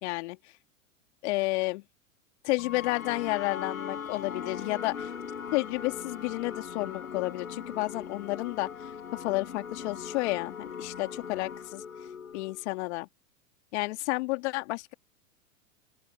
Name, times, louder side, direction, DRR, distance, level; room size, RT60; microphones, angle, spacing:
voice 1, 0.0-0.4 1.2-1.8 2.4-5.1 5.5-11.8 12.3-13.1 13.7-14.9, left 22 dB, 55° left, 2.8 m, -31 dB
sound 1, 2.6-12.8, left 7 dB, 80° left, 5.3 m, -40 dB
open air
hypercardioid pair, 100°, 41 cm